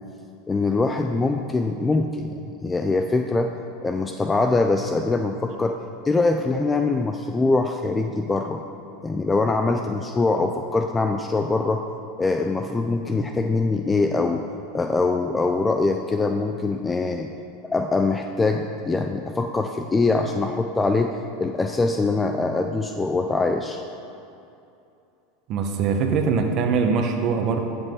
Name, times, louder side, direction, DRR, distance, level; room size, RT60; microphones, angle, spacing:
voice 1, 0.5-3.5 3.8-5.8 6.0-8.6 9.0-11.8 12.2-14.5 14.7-17.3 17.7-21.1 21.4-23.8, left 3 dB, 15° left, 5 dB, 0.4 m, -23 dB
voice 2, 25.5-27.6, right 5 dB, 45° right, 4 dB, 1.1 m, -22 dB
12.0 x 7.4 x 3.8 m, 2.7 s
supercardioid pair, 115°, 0 cm